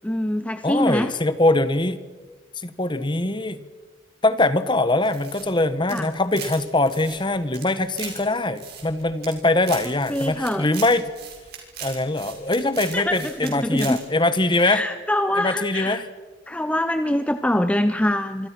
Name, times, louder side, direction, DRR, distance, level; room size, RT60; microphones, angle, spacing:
voice 1, 0.0-1.1 5.9-6.1 10.1-10.7 12.9-14.0 14.6-16.0 16.5-18.5, left 1 dB, 5° left, 9 dB, 0.6 m, -24 dB
voice 2, 0.6-2.0 2.6-3.7 4.2-11.1 11.8-14.8 15.4-16.1, left 2 dB, 25° left, 13 dB, 1.2 m, -22 dB
sound 1, 5.0-6.6 6.9-8.2 8.6-9.3 9.6-13.5 13.8-14.0, right 8 dB, 50° right, 6.2 m, -38 dB
26.0 x 25.0 x 6.0 m, 1.4 s
head